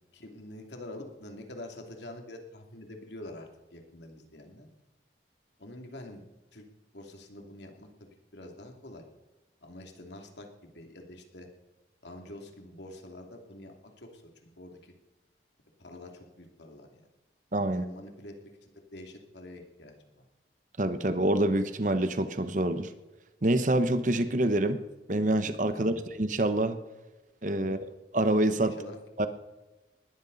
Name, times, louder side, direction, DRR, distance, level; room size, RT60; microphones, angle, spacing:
voice 1, 0.1-4.7 5.6-6.2 6.5-6.6 6.9-9.0 9.6-11.5 12.0-14.9 15.8-17.1 17.6-18.4 18.6-20.2 25.7-26.0 27.6-27.8 28.6-29.0, left 1 dB, 75° left, 3 dB, 2.7 m, -46 dB
voice 2, 17.5-17.8 20.8-22.9 23.4-24.8 25.1-26.8 27.4-27.8 28.1-28.7 29.2-29.3, right 1 dB, 45° right, 10 dB, 1.0 m, -26 dB
20.0 x 13.5 x 4.1 m, 1.1 s
head